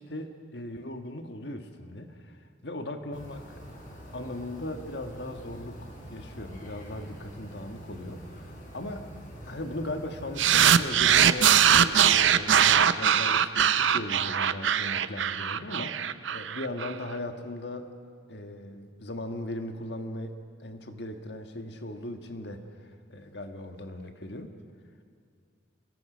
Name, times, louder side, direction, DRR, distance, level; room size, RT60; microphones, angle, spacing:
voice 1, 0.0-2.4 2.6-3.4 4.1-9.1 9.5-17.9 18.3-24.6, left 1 dB, 65° left, 6 dB, 1.6 m, -38 dB
sound 1, 3.1-12.1, equal, 45° left, 4.2 m, -45 dB
sound 2, 10.4-16.9, right 9 dB, 80° right, 0.6 m, -21 dB
26.5 x 21.5 x 5.2 m, 2.2 s
head